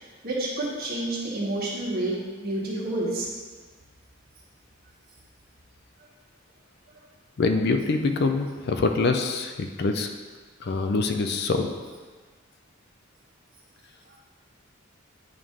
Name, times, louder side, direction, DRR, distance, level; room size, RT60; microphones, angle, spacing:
voice 1, 0.2-3.3, right 2 dB, 45° right, -5 dB, 1.5 m, -29 dB
voice 2, 7.4-10.1 10.6-11.7, left 3 dB, 50° left, 5 dB, 0.4 m, -25 dB
8.9 x 3.2 x 3.7 m, 1.4 s
head